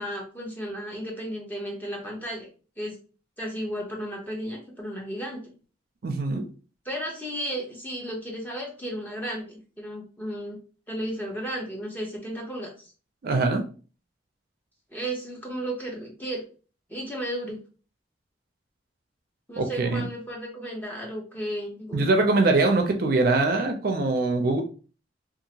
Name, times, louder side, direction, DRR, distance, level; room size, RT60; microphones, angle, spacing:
voice 1, 0.0-2.5 2.8-3.0 3.4-5.4 6.9-10.6 10.9-12.7 14.9-16.4 16.9-17.6 19.5-22.3, equal, 10° left, -1 dB, 0.7 m, -34 dB
voice 2, 6.0-6.4 13.2-13.6 19.6-20.1 21.9-24.6, right 3 dB, 50° right, 4 dB, 0.4 m, -23 dB
2.8 x 2.4 x 2.7 m, 0.37 s
head